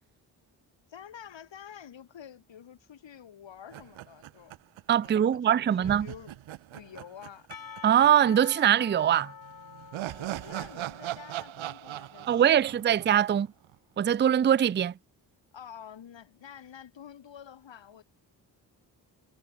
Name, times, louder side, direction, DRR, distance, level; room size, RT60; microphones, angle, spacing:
voice 1, 0.9-4.5 5.0-6.4 6.7-7.5 10.2-13.1 15.5-18.0, left 9 dB, 70° left, 5.2 m, -48 dB
sound 1, 3.7-5.1 5.3-5.4 5.8-8.1 8.3-8.4 9.4-13.7, right 14 dB, 85° right, 2.0 m, -39 dB
voice 2, 4.9-6.1 7.8-9.3 12.3-13.5 14.0-14.9, right 10 dB, 25° right, 0.4 m, -22 dB
Percussion / Church bell, 7.5-12.6, left 6 dB, 45° left, 2.3 m, -47 dB
supercardioid pair, 40°, 46 cm